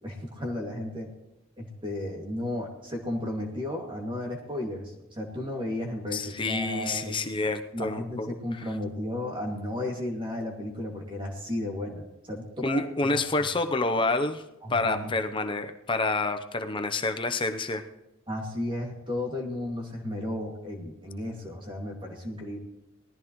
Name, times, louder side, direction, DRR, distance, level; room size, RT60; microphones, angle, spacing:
voice 1, 0.0-1.1 1.6-7.2 7.7-13.2 14.6-15.1 18.3-22.6, left 1 dB, 25° right, 0 dB, 2.4 m, -34 dB
voice 2, 6.1-8.7 12.6-14.4 14.7-17.8, left 3 dB, 25° left, 7 dB, 0.8 m, -28 dB
19.5 x 14.5 x 3.2 m, 0.93 s
head